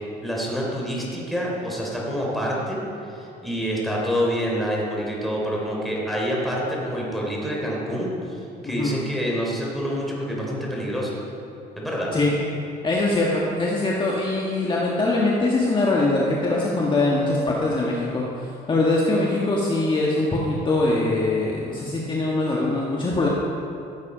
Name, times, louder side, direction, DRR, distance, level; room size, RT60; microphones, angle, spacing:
voice 1, 0.2-2.8 3.0-11.2 11.7-12.1, equal, ahead, -4 dB, 3.4 m, -27 dB
voice 2, 12.8-23.3, left 2 dB, 30° left, -4 dB, 1.5 m, -22 dB
15.0 x 8.2 x 5.0 m, 2.6 s
cardioid pair, 110°, 17 cm